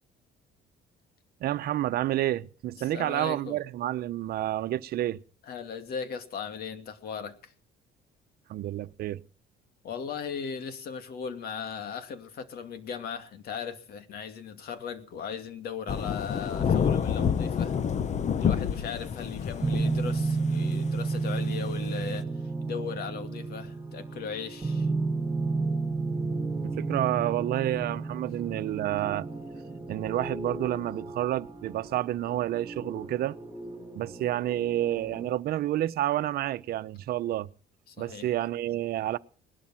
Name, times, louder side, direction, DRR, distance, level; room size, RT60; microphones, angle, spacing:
voice 1, 1.4-5.2 8.5-9.2 26.6-29.3 29.9-33.4 33.9-37.5 38.0-39.2, right 13 dB, 65° right, 1.0 m, -29 dB
voice 2, 2.9-3.6 5.5-7.5 9.8-17.7 18.4-22.3 22.6-24.9 37.9-38.3, left 6 dB, 65° left, 2.6 m, -37 dB
Thunder / Rain, 15.9-22.2, left 7 dB, 45° left, 1.1 m, -28 dB
sound 1, 19.6-35.3, right 3 dB, 15° right, 6.7 m, -32 dB
20.0 x 12.5 x 5.9 m
cardioid pair, 110°, 17 cm